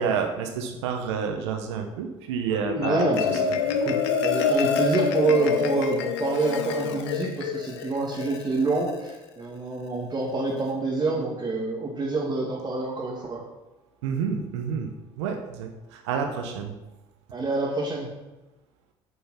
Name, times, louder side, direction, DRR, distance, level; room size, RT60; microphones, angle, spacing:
voice 1, 0.0-3.1 14.0-14.9 15.2-16.7, right 6 dB, 85° right, 4 dB, 1.0 m, -29 dB
Marimba xylophone, 2.5-9.2, left 5 dB, 85° left, 0.9 m, -27 dB
voice 2, 2.8-13.4 17.3-18.1, right 3 dB, 30° right, -5 dB, 2.5 m, -27 dB
9.2 x 5.6 x 5.8 m, 1.0 s
hypercardioid pair, 70°, 14 cm